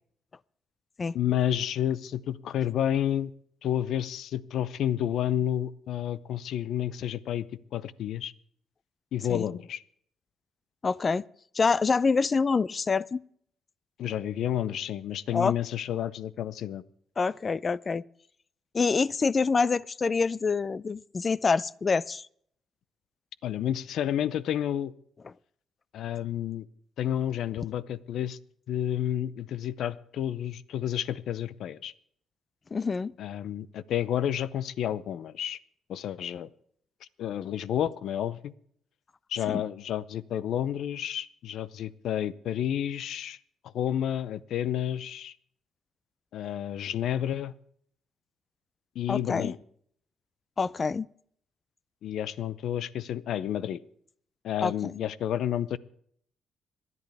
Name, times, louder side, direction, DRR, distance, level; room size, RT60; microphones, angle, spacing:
voice 1, 1.1-3.3 3.6-7.5 7.7-8.3 9.1-9.8 14.0-16.8 23.4-24.9 25.9-26.7 27.0-28.4 28.7-31.9 33.2-35.6 35.9-36.5 37.2-38.5 39.3-43.4 43.7-45.3 46.3-47.5 48.9-49.6 52.0-53.8 54.4-55.8, left 10 dB, 75° left, 0.6 m, -30 dB
voice 2, 10.8-11.2 11.5-13.2 15.3-15.5 17.2-18.0 18.7-22.3 32.7-33.1 39.5-39.6 49.1-49.5 50.6-51.1 54.6-55.0, left 4 dB, 35° left, 0.4 m, -26 dB
26.0 x 11.0 x 3.5 m
cardioid pair, 90°, 0 cm